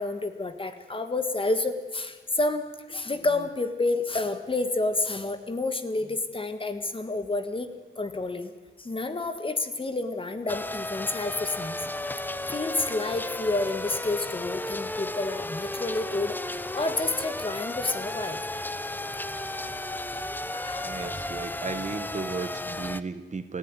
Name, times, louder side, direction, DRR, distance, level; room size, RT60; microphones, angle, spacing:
voice 1, 0.0-7.7 8.0-8.5 8.8-11.8 12.5-18.5 20.5-21.1, left 2 dB, 25° left, 9 dB, 1.5 m, -29 dB
sound 1, 10.5-23.0, left 1 dB, 10° left, 0.7 m, -34 dB
voice 2, 20.8-23.6, right 4 dB, 35° right, 10 dB, 1.3 m, -35 dB
28.5 x 15.5 x 9.7 m, 1.4 s
wide cardioid pair, 170°, 20 cm